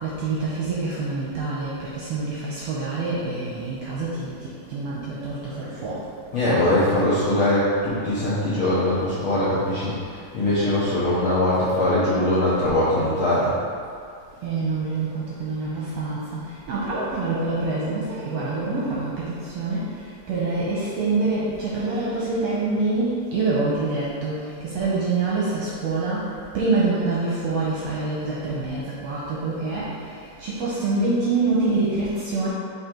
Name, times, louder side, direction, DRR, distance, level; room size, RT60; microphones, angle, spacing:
voice 1, 0.0-6.1 14.4-16.4 16.7-19.9 20.3-26.3 26.5-29.9 30.4-32.5, right 3 dB, 70° right, -6 dB, 1.6 m, -26 dB
voice 2, 6.3-13.5, left 1 dB, 65° left, -11 dB, 1.3 m, -21 dB
6.4 x 4.0 x 4.5 m, 2.3 s
omnidirectional pair, 3.8 m